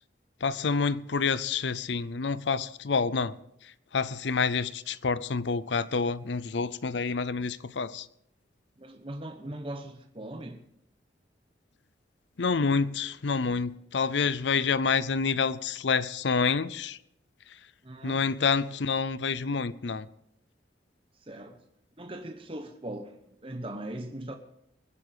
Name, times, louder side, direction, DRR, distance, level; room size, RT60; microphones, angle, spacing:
voice 1, 0.4-3.3 3.9-8.0 12.4-17.0 18.0-20.1, left 5 dB, 80° left, 0.6 m, -28 dB
voice 2, 8.8-10.6 17.8-18.3 21.2-21.6 22.0-24.4, right 1 dB, 30° right, 1.0 m, -40 dB
21.5 x 8.5 x 5.1 m
head